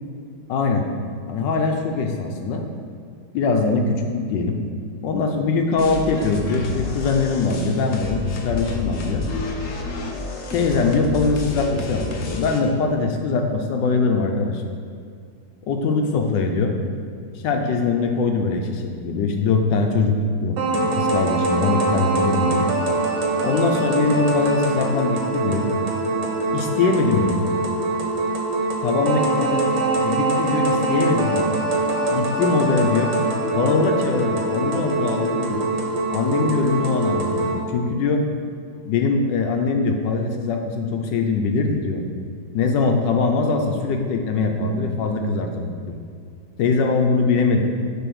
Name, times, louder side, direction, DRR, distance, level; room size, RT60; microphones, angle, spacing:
voice 1, 0.5-0.8 1.3-2.6 3.3-4.6 5.0-9.3 10.5-14.6 15.7-16.8 17.3-22.7 23.4-25.7 26.5-27.4 28.8-31.5 32.1-33.1 33.5-35.7 36.1-38.2 38.8-42.0 42.5-46.0 46.6-47.6, left 4 dB, 75° left, 3 dB, 1.3 m, -22 dB
sound 1, 5.8-12.6, left 4 dB, 55° left, 0.9 m, -30 dB
sound 2, 20.6-37.6, right 2 dB, 90° right, 1.7 m, -23 dB
6.9 x 3.4 x 6.2 m, 2.3 s
omnidirectional pair, 2.0 m